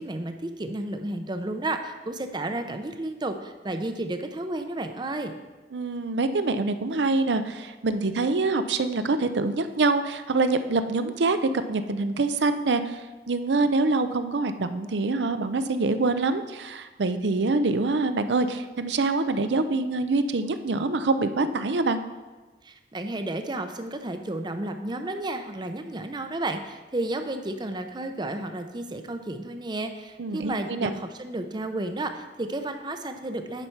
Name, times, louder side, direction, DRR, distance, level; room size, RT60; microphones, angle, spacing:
voice 1, 0.0-5.3 22.6-33.7, right 2 dB, 25° right, 7 dB, 0.6 m, -32 dB
voice 2, 5.7-22.0 30.2-30.9, right 3 dB, 85° right, 10 dB, 0.6 m, -25 dB
9.8 x 5.7 x 4.6 m, 1.2 s
head